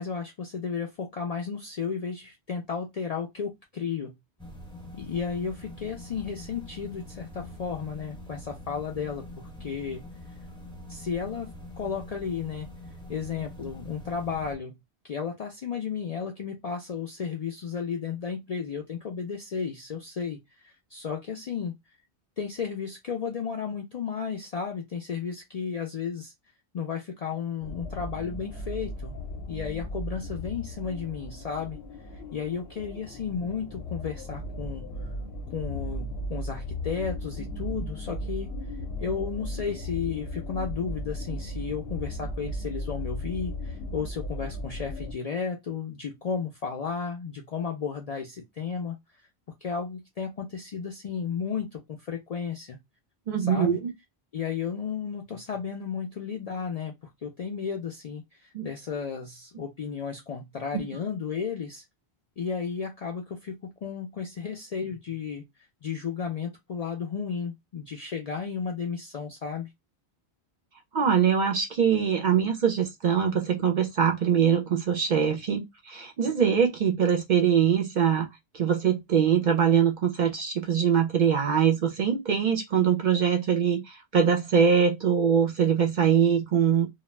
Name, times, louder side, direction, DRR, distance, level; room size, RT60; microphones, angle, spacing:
voice 1, 0.0-4.1 5.0-10.0 10.9-12.7 13.1-14.8 15.0-21.7 22.4-26.3 26.7-29.1 29.5-31.8 32.1-34.8 35.5-38.5 39.0-49.0 49.6-52.8 53.4-53.8 54.3-56.9 57.2-61.8 62.4-65.4 65.8-69.7, left 6 dB, 55° left, 0.4 m, -33 dB
sound 1, 4.4-14.5, left 1 dB, 5° left, 0.5 m, -44 dB
sound 2, 27.6-45.1, left 1 dB, 80° left, 0.9 m, -36 dB
voice 2, 53.3-53.9 58.5-58.7 70.9-78.3 78.5-86.9, right 7 dB, 55° right, 0.6 m, -23 dB
2.3 x 2.1 x 3.1 m
omnidirectional pair, 1.1 m